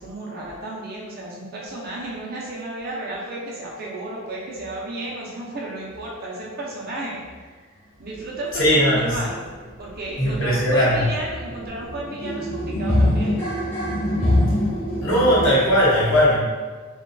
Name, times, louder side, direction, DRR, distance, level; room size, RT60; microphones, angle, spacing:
voice 1, 0.0-7.5 8.0-9.4 9.8-13.4, right 2 dB, 45° right, -4 dB, 0.5 m, -33 dB
voice 2, 8.5-9.2 10.2-11.0 15.0-16.4, equal, 60° left, -7 dB, 0.8 m, -18 dB
sound 1, 9.5-15.5, left 1 dB, 5° left, 0.9 m, -24 dB
2.5 x 2.2 x 2.2 m, 1.4 s
head